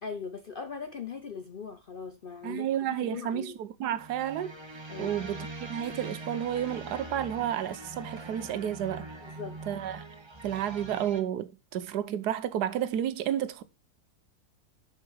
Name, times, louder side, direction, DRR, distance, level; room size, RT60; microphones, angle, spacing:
voice 1, 0.0-3.6 4.9-5.2 9.2-9.6, left 5 dB, 60° left, 0.5 m, -40 dB
voice 2, 2.4-4.6 5.0-9.1 9.7-10.0 10.4-13.6, right 10 dB, 75° right, 1.3 m, -31 dB
sound 1, 3.9-11.2, right 2 dB, 40° right, 0.3 m, -43 dB
6.6 x 5.9 x 4.4 m
omnidirectional pair, 1.8 m